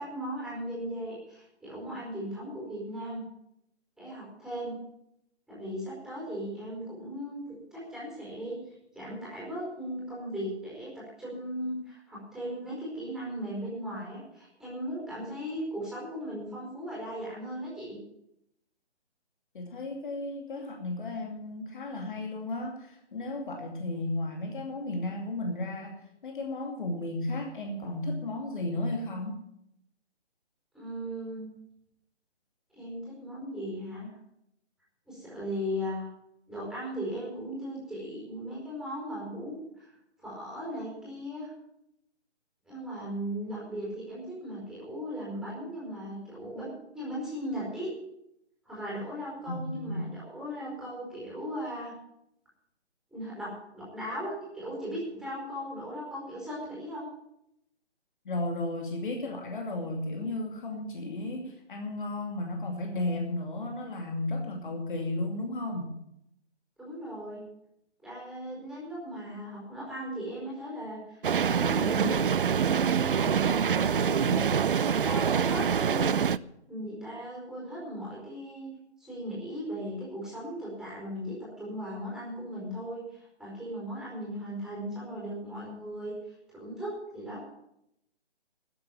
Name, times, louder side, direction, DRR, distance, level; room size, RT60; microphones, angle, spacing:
voice 1, 0.0-3.2 4.0-4.7 5.5-7.4 7.7-8.6 8.9-18.0 30.7-31.5 32.7-34.1 35.1-36.1 36.5-39.9 40.2-41.5 42.7-47.9 48.6-51.9 53.1-57.1 66.8-67.4 68.0-76.1 76.7-78.7 79.0-86.1 86.5-87.4, equal, ahead, -6 dB, 4.7 m, -37 dB
voice 2, 19.5-29.4 49.5-50.1 58.2-65.9, left 2 dB, 45° left, 2 dB, 2.5 m, -34 dB
sound 1, 71.2-76.4, right 7 dB, 50° right, 0.5 m, -25 dB
13.5 x 8.1 x 9.3 m, 0.79 s
figure-of-eight pair, 155°, 34 cm